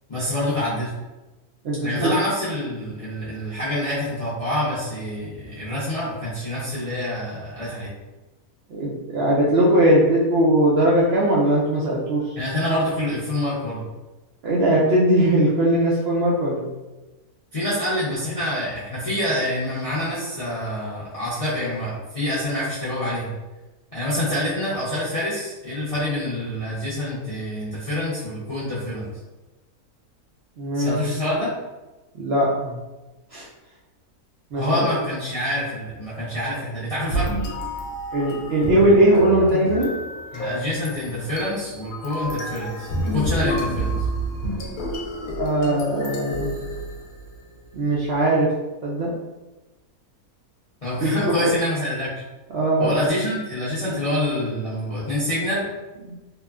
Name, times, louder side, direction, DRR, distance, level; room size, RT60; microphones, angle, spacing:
voice 1, 0.1-0.9 1.8-7.9 12.4-13.8 17.5-23.3 23.9-29.1 30.7-31.5 34.6-37.3 40.3-43.9 50.8-52.2 52.8-55.6, left 1 dB, 45° left, -10 dB, 0.4 m, -26 dB
voice 2, 1.6-2.1 8.7-12.2 14.4-16.7 30.6-30.9 32.1-32.7 33.3-33.4 34.5-34.9 38.1-39.9 45.4-46.5 47.7-48.5 48.8-49.1 51.0-51.1 51.4-51.5 52.5-52.9 56.0-56.2, right 1 dB, 70° right, -6 dB, 0.6 m, -19 dB
sound 1, 37.1-47.4, equal, 75° left, 0.9 m, -29 dB
3.0 x 2.1 x 2.3 m, 1.1 s
omnidirectional pair, 1.6 m